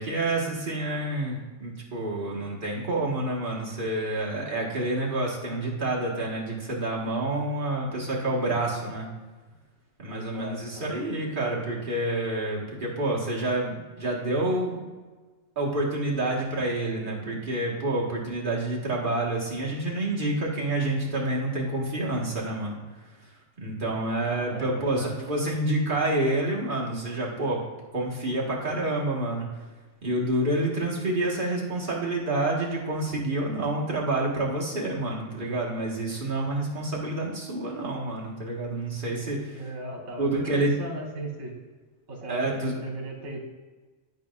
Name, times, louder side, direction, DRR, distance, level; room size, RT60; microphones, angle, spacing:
voice 1, 0.0-9.1 10.0-14.8 15.6-22.8 23.6-27.6 27.9-29.5 30.0-39.6 40.2-40.7 42.3-42.8, right 2 dB, 40° right, -4 dB, 1.7 m, -28 dB
voice 2, 10.1-10.9 24.1-25.1 39.2-41.6 42.1-43.4, right 1 dB, 75° right, 1 dB, 1.9 m, -37 dB
12.0 x 5.2 x 2.5 m, 1.3 s
omnidirectional pair, 1.4 m